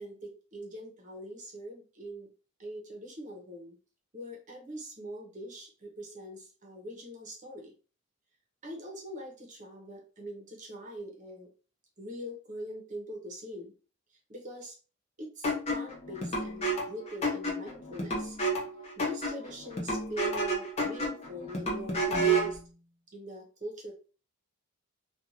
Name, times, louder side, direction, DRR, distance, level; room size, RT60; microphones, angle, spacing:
voice 1, 0.0-2.3 2.6-3.7 4.1-7.7 8.6-11.5 12.0-13.7 14.3-14.7 15.2-18.4 19.0-22.6 23.1-23.9, equal, 35° right, 0 dB, 0.8 m, -42 dB
sound 1, 15.4-22.6, right 2 dB, 30° left, 0.7 m, -31 dB
2.5 x 2.4 x 2.8 m, 0.36 s
head